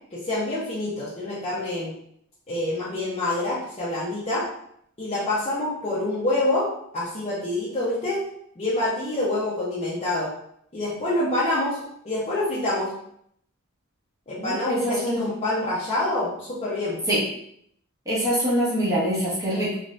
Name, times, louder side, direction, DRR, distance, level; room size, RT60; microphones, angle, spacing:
voice 1, 0.1-1.9 2.5-4.4 5.0-6.7 6.9-8.2 8.6-10.3 10.7-11.8 12.0-12.9 14.3-17.0, left 1 dB, 25° left, -9 dB, 0.7 m, -26 dB
voice 2, 14.4-15.2 17.1-17.2 18.1-19.7, equal, 15° right, -8 dB, 0.8 m, -24 dB
2.6 x 2.4 x 3.1 m, 0.70 s
head